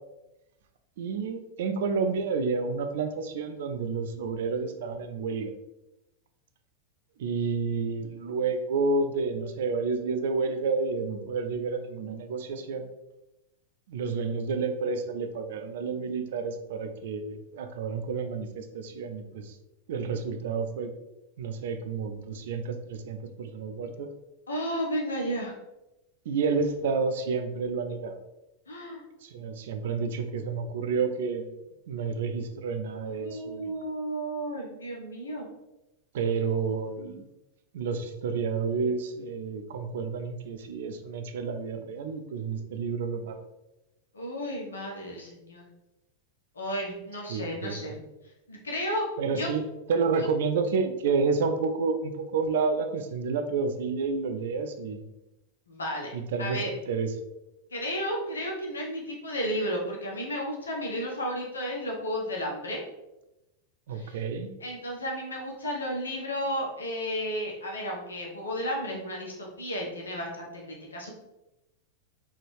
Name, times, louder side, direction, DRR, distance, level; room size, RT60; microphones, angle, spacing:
voice 1, 1.0-5.5 7.2-12.9 13.9-19.5 19.9-20.9 21.4-24.1 26.3-28.2 29.2-31.5 31.9-33.7 36.1-37.3 37.7-43.4 47.3-47.9 49.2-55.0 56.1-57.1 63.9-64.5, right 4 dB, 55° right, 7 dB, 0.5 m, -30 dB
voice 2, 24.5-25.5 28.7-29.0 33.2-35.5 44.1-45.6 46.5-47.9 48.5-49.5 50.2-50.3 55.7-56.1 56.4-56.7 57.7-62.8 63.9-64.2 64.6-71.1, equal, 70° left, -2 dB, 1.2 m, -33 dB
4.1 x 3.7 x 3.3 m, 0.94 s
figure-of-eight pair, 90°, 0 cm